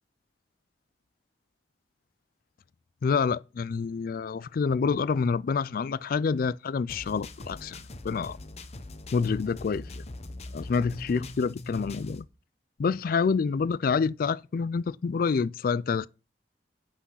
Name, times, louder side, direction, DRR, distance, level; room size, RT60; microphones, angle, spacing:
voice 1, 3.0-7.8 8.0-8.4 9.1-10.0 10.5-12.2 12.8-16.1, left 5 dB, 55° left, 0.3 m, -27 dB
sound 1, 6.9-12.2, left 2 dB, 40° left, 1.0 m, -41 dB
8.1 x 6.1 x 5.6 m
head